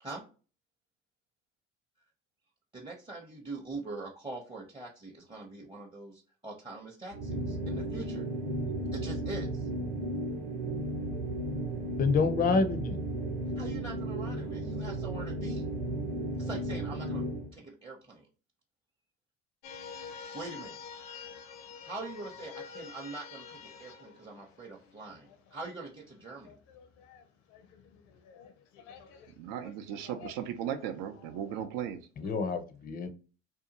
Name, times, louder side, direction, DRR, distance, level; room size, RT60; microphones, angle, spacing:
voice 1, 2.7-8.3 8.9-9.7 13.6-15.7 16.4-18.3 20.3-20.8 21.5-26.5, right 3 dB, 15° right, 0.6 m, -43 dB
sound 1, 7.1-17.5, right 1 dB, 90° right, 0.9 m, -34 dB
voice 2, 12.0-13.0 32.2-33.1, left 4 dB, 25° left, 0.4 m, -27 dB
sound 2, 19.6-25.7 26.0-31.7, left 6 dB, 75° left, 0.6 m, -48 dB
voice 3, 29.4-32.0, right 9 dB, 65° right, 0.5 m, -36 dB
2.7 x 2.2 x 2.7 m
hypercardioid pair, 65°, 36 cm